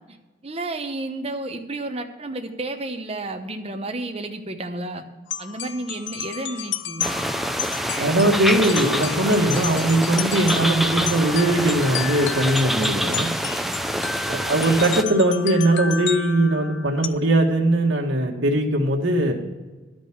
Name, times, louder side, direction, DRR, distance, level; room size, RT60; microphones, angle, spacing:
voice 1, 0.4-5.0 5.4-7.1 13.6-14.1, right 2 dB, 30° right, 6 dB, 0.9 m, -32 dB
sound 1, 5.3-17.1, left 8 dB, 70° left, 0.5 m, -32 dB
sound 2, 7.0-15.0, equal, ahead, 0.4 m, -26 dB
voice 2, 7.9-13.3 14.3-19.3, right 1 dB, 80° right, 0 dB, 1.6 m, -20 dB
12.0 x 5.2 x 8.5 m, 1.3 s
head